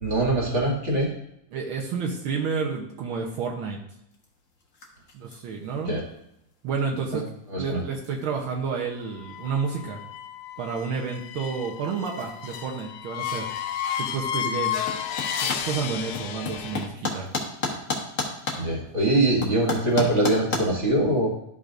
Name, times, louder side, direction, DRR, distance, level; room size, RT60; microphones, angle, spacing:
voice 1, 0.0-1.1 5.9-6.0 7.5-7.8 18.6-21.3, right 1 dB, 25° right, -3 dB, 1.9 m, -23 dB
voice 2, 1.5-3.8 5.1-6.0 6.6-7.3 7.6-10.0 10.6-13.5 14.0-14.9 15.4-17.3, right 5 dB, 85° right, -1 dB, 1.1 m, -30 dB
sound 1, 4.1-20.6, left 3 dB, 60° left, 0.8 m, -37 dB
sound 2, 9.2-16.9, left 9 dB, 80° left, 1.5 m, -32 dB
12.5 x 5.6 x 2.5 m, 0.79 s
omnidirectional pair, 3.5 m